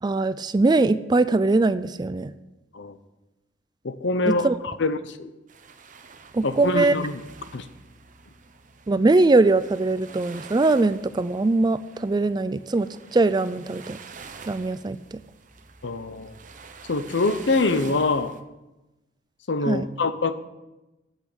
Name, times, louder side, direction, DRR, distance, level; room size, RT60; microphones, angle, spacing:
voice 1, 0.0-2.3 4.3-4.6 6.3-7.0 8.9-14.0 14.5-15.2 19.7-19.9, right 3 dB, 20° right, 14 dB, 0.3 m, -21 dB
voice 2, 3.8-5.3 6.4-7.2 7.5-7.7 15.8-16.3 16.9-18.3 19.5-20.3, left 3 dB, 65° left, 12 dB, 0.8 m, -25 dB
sound 1, 5.5-18.4, right 5 dB, 40° right, 0.8 m, -47 dB
8.3 x 8.2 x 8.9 m, 1.0 s
head